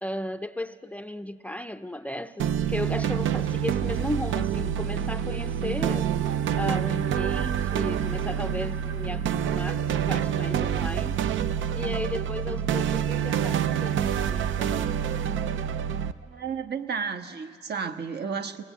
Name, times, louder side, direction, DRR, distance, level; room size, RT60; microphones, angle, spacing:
voice 1, 0.0-6.1 6.6-11.2 11.7-15.0, left 1 dB, 5° left, 12 dB, 0.5 m, -35 dB
sound 1, 2.4-16.1, right 9 dB, 75° right, 0.7 m, -27 dB
voice 2, 16.2-18.6, right 6 dB, 55° right, 8 dB, 1.3 m, -32 dB
22.0 x 19.0 x 8.5 m, 2.2 s
cardioid pair, 90°, 20 cm